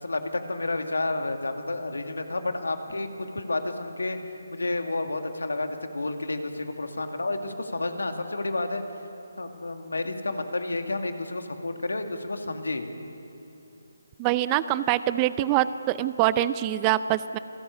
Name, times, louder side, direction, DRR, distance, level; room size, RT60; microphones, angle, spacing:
voice 1, 0.0-4.2 4.5-8.8 9.4-12.9, left 2 dB, 80° left, 6 dB, 2.3 m, -30 dB
voice 2, 14.2-17.4, right 13 dB, 20° right, 15 dB, 0.5 m, -24 dB
28.0 x 16.5 x 8.4 m, 3.0 s
figure-of-eight pair, 150°, 0 cm